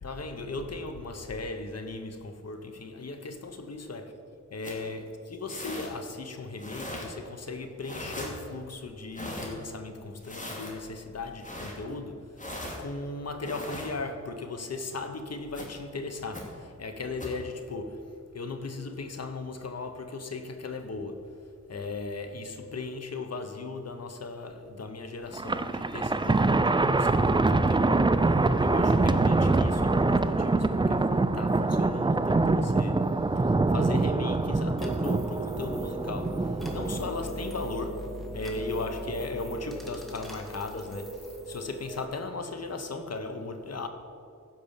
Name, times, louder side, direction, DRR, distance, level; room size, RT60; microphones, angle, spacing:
voice 1, 0.0-4.1 4.5-12.3 12.6-18.0 18.3-21.3 21.7-28.1 28.6-33.1 33.7-36.4 36.7-38.0 38.3-43.9, left 3 dB, 55° left, 1.2 m, -37 dB
sound 1, 4.6-4.8 5.5-5.9 6.6-7.1 7.8-8.3 9.1-9.5 10.2-10.7 11.4-11.7 12.4-12.8 13.4-13.9 15.5-15.7 16.3-16.4 17.2-17.4, left 1 dB, 25° left, 2.5 m, -39 dB
Thunder, 25.3-37.1, right 3 dB, 15° right, 0.4 m, -24 dB
sound 2, 34.8-42.0, right 1 dB, ahead, 1.8 m, -38 dB
15.5 x 5.3 x 7.3 m
wide cardioid pair, 80°, 31 cm